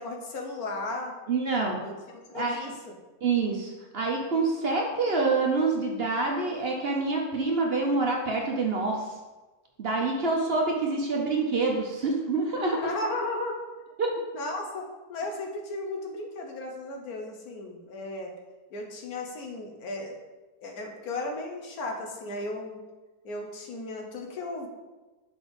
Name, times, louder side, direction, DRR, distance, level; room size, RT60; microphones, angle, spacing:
voice 1, 0.0-1.1 1.8-3.0 12.8-13.6 14.3-18.3 18.7-20.2 20.6-22.8 23.2-24.7, left 2 dB, 75° left, 1 dB, 1.5 m, -35 dB
voice 2, 1.3-1.8 2.3-2.7 3.2-9.1 9.8-12.9 14.0-14.1, right 3 dB, 50° right, 0 dB, 0.9 m, -26 dB
5.9 x 4.1 x 5.2 m, 1.2 s
omnidirectional pair, 1.6 m